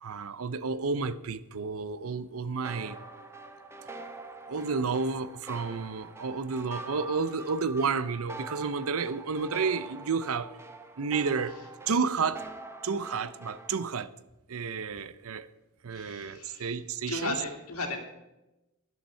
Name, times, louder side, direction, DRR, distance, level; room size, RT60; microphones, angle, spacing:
voice 1, 0.0-3.0 4.5-10.5 11.0-11.6 11.9-12.4 12.8-14.1 14.5-15.5 15.8-17.4, right 5 dB, 70° right, 0.6 m, -31 dB
sound 1, 2.6-13.9, right 3 dB, 10° right, 0.8 m, -44 dB
voice 2, 15.9-16.8 17.1-18.0, left 2 dB, 75° left, 2.3 m, -35 dB
12.0 x 11.5 x 4.4 m
head